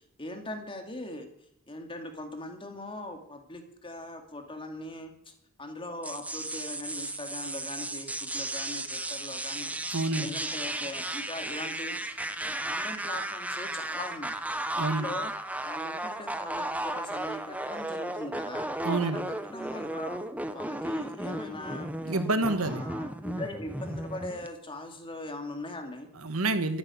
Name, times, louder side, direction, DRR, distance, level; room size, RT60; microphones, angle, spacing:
voice 1, 0.2-1.3 1.7-5.3 5.6-9.7 10.2-12.0 12.6-14.3 14.7-15.3 15.6-18.7 19.0-19.2 19.5-20.2 20.5-21.9 22.6-26.1, left 1 dB, 25° left, 5 dB, 2.5 m, -40 dB
sound 1, 6.0-24.5, right 1 dB, 5° right, 1.0 m, -35 dB
voice 2, 9.9-10.3 14.8-15.1 18.8-19.2 22.0-22.8 26.1-26.8, right 2 dB, 70° right, 9 dB, 1.6 m, -28 dB
13.5 x 11.5 x 8.6 m, 0.69 s
head